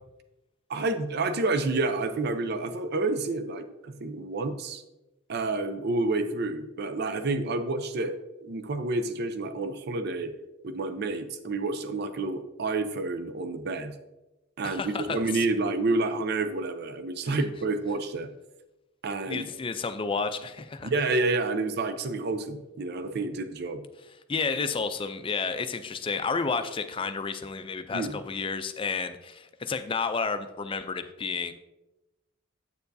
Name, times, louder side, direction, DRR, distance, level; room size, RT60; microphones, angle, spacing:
voice 1, 0.7-4.8 5.3-8.1 8.4-10.3 10.6-13.9 14.6-18.3 19.0-19.5 20.8-23.8 27.9-28.2, right 3 dB, 50° right, 8 dB, 0.5 m, -29 dB
voice 2, 14.6-15.4 17.3-17.4 19.3-20.9 24.3-31.5, left 5 dB, 25° left, 9 dB, 0.4 m, -31 dB
8.3 x 6.8 x 2.7 m, 1.0 s
head